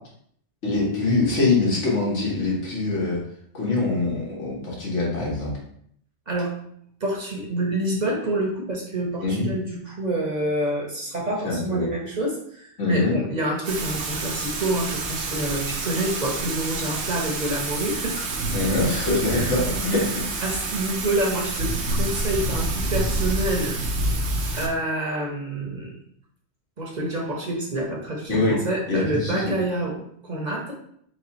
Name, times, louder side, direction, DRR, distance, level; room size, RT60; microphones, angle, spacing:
voice 1, 0.6-3.2 3.5-5.5 9.2-9.5 11.4-11.9 12.8-13.2 18.5-20.2 28.3-28.6 28.9-29.4, left 3 dB, 80° left, -4 dB, 1.8 m, -23 dB
voice 2, 7.0-18.4 19.3-19.5 20.4-23.8 24.5-25.9 26.8-30.0 30.2-30.7, right 1 dB, 40° right, -2 dB, 0.9 m, -27 dB
Thunder / Rain, 13.6-24.7, right 2 dB, 70° right, 1.0 m, -28 dB
4.8 x 2.4 x 4.1 m, 0.67 s
omnidirectional pair, 1.2 m